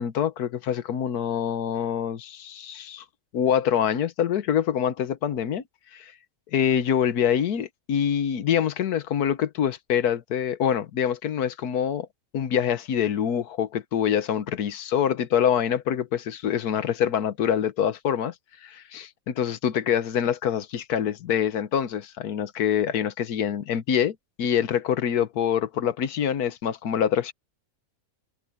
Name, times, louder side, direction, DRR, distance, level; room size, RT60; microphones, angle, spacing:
voice 1, 0.0-3.0 3.3-5.6 5.9-6.1 6.5-12.1 12.3-18.3 18.6-27.3, left 9 dB, 85° left, 1.5 m, -25 dB
omnidirectional pair, 1.6 m